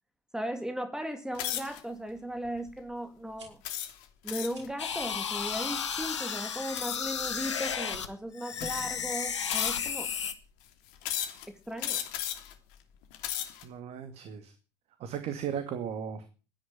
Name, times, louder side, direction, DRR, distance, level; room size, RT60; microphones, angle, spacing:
voice 1, 0.3-3.6 4.2-10.1 11.5-12.0, equal, 5° right, 8 dB, 2.4 m, -37 dB
sound 1, 1.4-1.8 2.5-2.7 3.6-4.7 6.8-7.2 8.0-8.1 8.6-9.0 9.5-10.1 11.0-11.5 11.8-12.5 13.0-13.6, left 12 dB, 60° left, 2.9 m, -35 dB
sound 2, 3.2-3.5 4.5-4.7 5.8-6.0 7.1-7.5, right 3 dB, 80° right, 5.3 m, -52 dB
sound 3, 4.8-8.1 8.4-10.3, left 7 dB, 80° left, 1.8 m, -33 dB
voice 2, 13.6-14.5 15.0-16.2, right 8 dB, 45° right, 9 dB, 2.3 m, -36 dB
14.0 x 10.5 x 8.9 m, 0.36 s
figure-of-eight pair, 75°, 15 cm